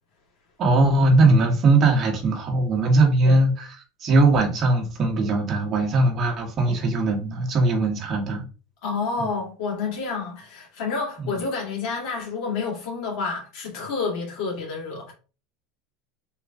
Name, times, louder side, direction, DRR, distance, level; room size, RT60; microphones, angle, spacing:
voice 1, 0.6-8.4 9.2-9.3 11.2-11.3, right 2 dB, 40° right, 1.2 m, -20 dB
voice 2, 8.8-15.1, left 4 dB, 60° left, 2.0 m, -29 dB
3.5 x 2.9 x 3.6 m
supercardioid pair, 125°, 0 cm